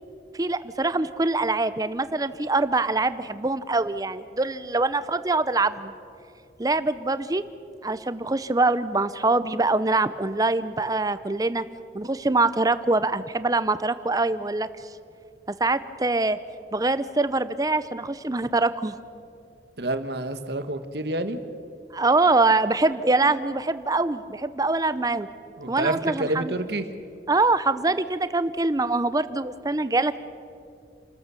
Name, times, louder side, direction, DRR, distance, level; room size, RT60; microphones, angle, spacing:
voice 1, 0.3-5.9 6.6-7.4 7.8-11.6 11.9-14.7 15.5-16.4 16.7-19.0 21.9-25.3 25.7-26.5 27.3-30.2, right 3 dB, 20° right, 13 dB, 0.6 m, -24 dB
voice 2, 19.8-21.4 25.6-26.8, right 2 dB, 65° right, 9 dB, 1.3 m, -28 dB
29.0 x 14.0 x 6.9 m, 2.5 s
head